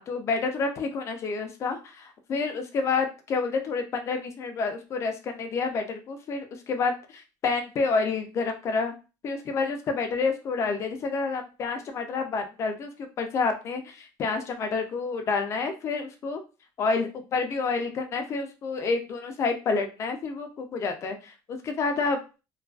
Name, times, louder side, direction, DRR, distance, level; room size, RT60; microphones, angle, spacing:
voice 1, 0.0-8.9 9.2-12.9 13.2-16.4 16.8-22.2, left 4 dB, 35° left, 5 dB, 0.4 m, -29 dB
2.3 x 2.3 x 2.3 m, 0.31 s
cardioid pair, 170°, 9 cm